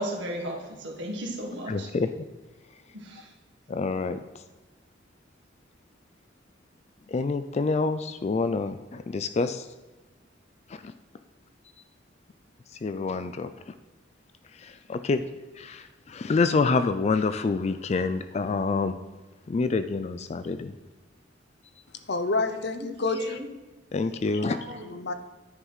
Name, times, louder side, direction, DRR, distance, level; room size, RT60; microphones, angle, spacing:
voice 1, 0.0-1.9 2.9-3.2 23.0-23.5 24.5-24.8, right 1 dB, 70° right, 1.5 m, -35 dB
voice 2, 1.7-2.1 3.7-4.2 7.1-9.6 10.7-10.8 12.8-13.5 14.6-15.2 15.6-18.9 19.5-20.7 23.9-24.6, left 4 dB, 35° left, 0.3 m, -27 dB
voice 3, 22.1-23.4 24.8-25.1, left 3 dB, 60° left, 0.7 m, -28 dB
9.8 x 4.8 x 5.5 m
head